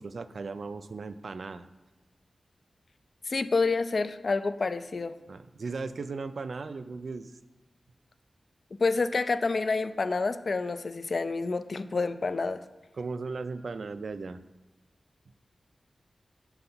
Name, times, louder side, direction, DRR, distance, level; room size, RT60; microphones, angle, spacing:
voice 1, 0.0-1.7 5.3-7.3 13.0-14.4, right 4 dB, 70° right, 11 dB, 0.3 m, -37 dB
voice 2, 3.3-5.1 8.8-12.6, left 3 dB, 55° left, 11 dB, 0.4 m, -28 dB
5.9 x 4.0 x 5.7 m, 1.1 s
wide cardioid pair, 70°, 0 cm